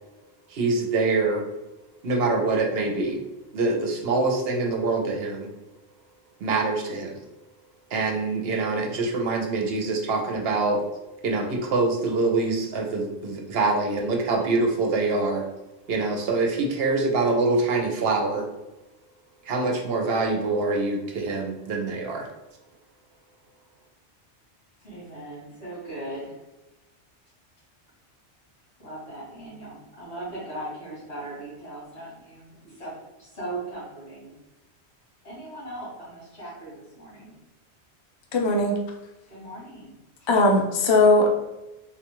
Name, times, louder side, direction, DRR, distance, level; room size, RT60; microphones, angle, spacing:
voice 1, 0.5-1.4 2.0-3.2 3.5-5.5 6.4-7.1 7.9-10.8 11.2-15.5 15.9-18.4 19.4-22.3, right 3 dB, 65° right, 1 dB, 0.8 m, -25 dB
voice 2, 24.8-26.4 28.8-34.4 35.2-37.4 39.3-39.9 40.2-40.3, right 1 dB, 85° left, -7 dB, 1.9 m, -39 dB
voice 3, 38.3-38.8 40.3-41.4, left 2 dB, 50° left, 2 dB, 0.3 m, -19 dB
3.5 x 2.4 x 3.0 m, 1.0 s
omnidirectional pair, 1.1 m